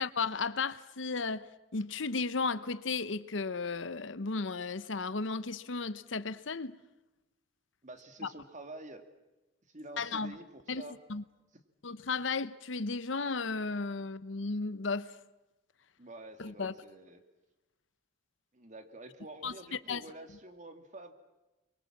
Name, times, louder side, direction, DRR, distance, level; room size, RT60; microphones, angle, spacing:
voice 1, 0.0-1.4 1.7-6.8 10.0-10.4 10.7-10.8 11.1-11.2 11.8-15.1 16.4-16.7 19.4-19.5 19.9-20.0, left 4 dB, 70° left, 0.9 m, -34 dB
voice 2, 7.8-9.0 9.7-11.0 16.0-17.3 18.5-21.1, right 2 dB, 40° right, 2.3 m, -48 dB
29.5 x 23.0 x 7.3 m
head